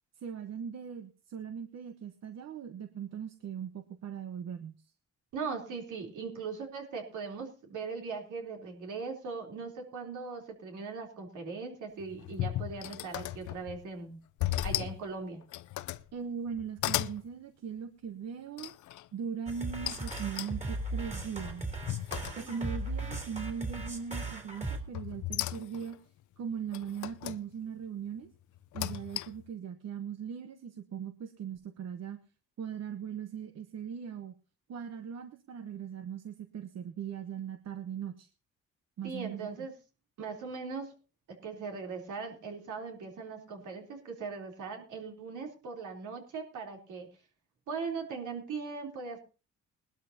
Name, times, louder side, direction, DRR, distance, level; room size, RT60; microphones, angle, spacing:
voice 1, 0.2-4.9 16.1-18.7 19.1-21.7 22.3-26.0 26.4-28.3 28.7-32.2 32.6-34.3 34.7-38.3 39.0-39.5, right 7 dB, 60° right, 9 dB, 1.1 m, -39 dB
voice 2, 5.3-14.2 14.6-15.4 39.0-39.7 40.2-40.9 41.3-47.1 47.7-49.2, right 4 dB, 80° right, 2 dB, 3.6 m, -39 dB
sound 1, 12.0-13.9 14.4-15.0 15.4-16.1 16.5-17.2 18.6-19.1 19.9-22.8 23.1-23.6 24.9-26.0 26.7-27.4 28.6-29.5, left 14 dB, 75° left, 0.6 m, -36 dB
sound 2, 19.5-24.8, right 2 dB, 25° right, 3.2 m, -37 dB
20.0 x 12.5 x 2.8 m, 0.33 s
cardioid pair, 90°, 30 cm